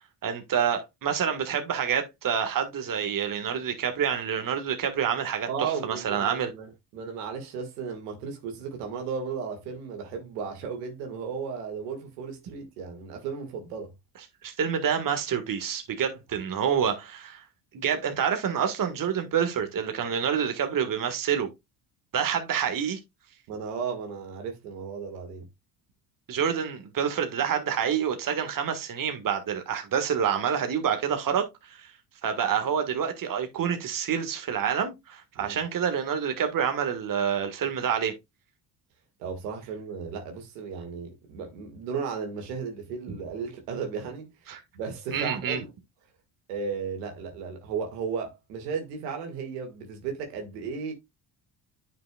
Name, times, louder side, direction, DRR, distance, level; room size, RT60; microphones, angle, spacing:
voice 1, 0.2-6.5 14.4-17.4 17.7-21.5 22.1-23.0 26.3-31.9 32.2-38.1 44.5-44.6 45.1-45.6, right 8 dB, 45° right, 1.7 m, -27 dB
voice 2, 5.5-13.9 23.5-25.5 35.4-35.6 39.2-44.3 44.7-45.7 46.5-50.9, right 6 dB, 85° right, 2.1 m, -35 dB
9.4 x 6.0 x 2.3 m
hypercardioid pair, 65°, 46 cm